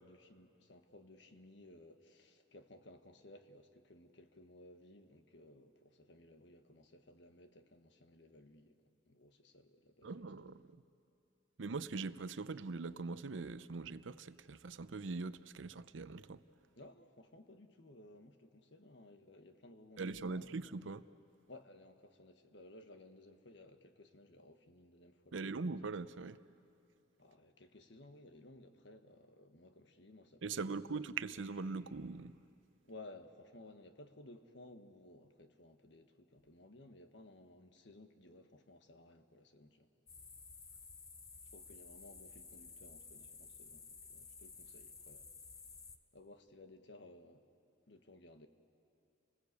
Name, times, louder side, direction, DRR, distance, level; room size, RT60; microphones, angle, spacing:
voice 1, 0.0-8.8 9.1-10.5 16.8-20.6 21.5-25.6 27.2-31.0 32.9-39.9 41.5-45.3 46.1-47.4 47.9-48.5, left 2 dB, 70° left, 1.4 m, -58 dB
voice 2, 10.0-10.6 11.6-16.4 20.0-21.0 25.3-26.4 30.4-32.4, right 4 dB, 85° right, 0.7 m, -42 dB
sound 1, 40.1-46.0, left 4 dB, 20° left, 0.8 m, -54 dB
30.0 x 20.0 x 8.3 m
head